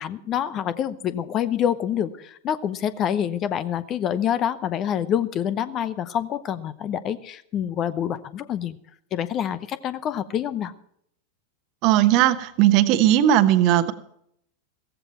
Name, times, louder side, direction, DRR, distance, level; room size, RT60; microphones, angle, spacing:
voice 1, 0.0-8.8 9.1-10.7, left 9 dB, 30° left, 15 dB, 0.8 m, -26 dB
voice 2, 11.8-13.9, right 12 dB, 40° right, 11 dB, 1.1 m, -18 dB
16.0 x 15.0 x 4.4 m, 0.69 s
figure-of-eight pair, 90°, 0 cm